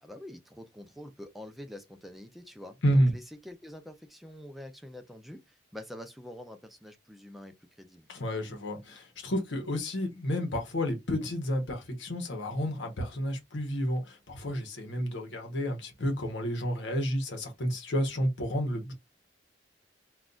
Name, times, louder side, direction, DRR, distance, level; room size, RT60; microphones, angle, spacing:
voice 1, 0.0-8.1, left 1 dB, ahead, 0.5 m, -46 dB
voice 2, 2.8-3.1 8.1-18.9, equal, 85° left, 0.9 m, -30 dB
3.9 x 2.4 x 2.3 m
head